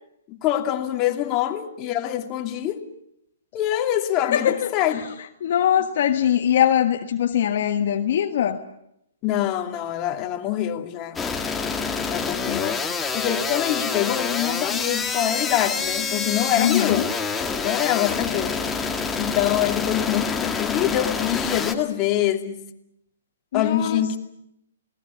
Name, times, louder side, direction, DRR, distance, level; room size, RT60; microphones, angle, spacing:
voice 1, 0.3-2.9 3.5-5.0 9.2-11.2 12.1-17.1 17.6-18.6 19.2-22.6 23.5-24.2, left 12 dB, 30° left, 2.7 m, -25 dB
voice 2, 4.2-5.1 5.4-8.6 12.5-12.6 16.5-17.1 23.5-24.2, left 10 dB, 55° left, 1.5 m, -22 dB
sound 1, 11.2-21.8, left 5 dB, 10° left, 1.9 m, -27 dB
28.5 x 19.0 x 8.4 m
hypercardioid pair, 135°, 0 cm